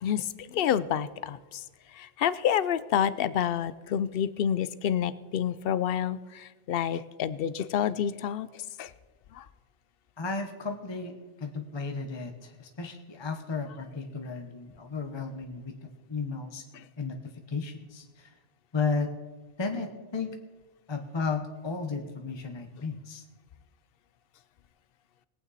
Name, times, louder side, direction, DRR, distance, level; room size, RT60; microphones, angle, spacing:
voice 1, 0.0-1.6 1.9-8.9 9.3-9.5 16.7-16.9, left 9 dB, 60° left, 16 dB, 0.7 m, -29 dB
voice 2, 10.2-16.6 17.0-17.2 17.5-18.3 18.7-19.1 19.6-20.4 20.9-23.2, left 4 dB, 25° left, 5 dB, 0.9 m, -34 dB
20.5 x 8.9 x 4.1 m, 1.3 s
omnidirectional pair, 1.2 m